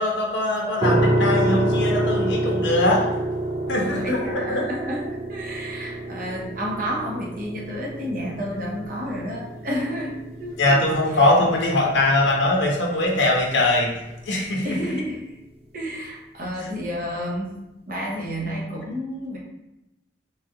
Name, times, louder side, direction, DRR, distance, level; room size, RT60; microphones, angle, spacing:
voice 1, 0.0-3.1 3.7-4.6 10.6-13.9 14.3-14.7, left 2 dB, 80° left, -1 dB, 0.6 m, -21 dB
sound 1, 0.8-13.7, right 1 dB, 35° right, 0.3 m, -27 dB
voice 2, 3.8-10.1 10.4-11.3 14.6-15.2 15.7-19.4, equal, 50° right, -3 dB, 0.7 m, -31 dB
3.2 x 2.4 x 2.7 m, 0.93 s
head